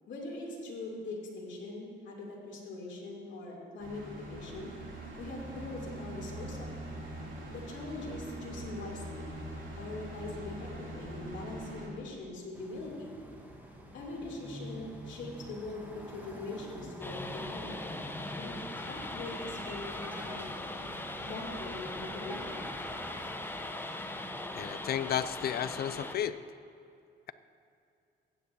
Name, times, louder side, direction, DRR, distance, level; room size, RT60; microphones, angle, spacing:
voice 1, 0.1-4.7 5.2-6.8 7.5-9.3 9.8-13.1 13.9-17.7 18.4-20.5 21.2-22.6, left 2 dB, 65° left, -3 dB, 2.9 m, -42 dB
sound 1, 3.8-11.9, right 1 dB, 75° right, 2.7 m, -43 dB
sound 2, 12.5-23.4, equal, 10° right, 1.4 m, -48 dB
sound 3, 17.0-26.2, left 2 dB, 10° left, 0.7 m, -40 dB
voice 2, 24.5-26.4, left 10 dB, 50° left, 14 dB, 0.4 m, -33 dB
16.0 x 9.5 x 2.8 m, 2.5 s
cardioid pair, 90°, 20 cm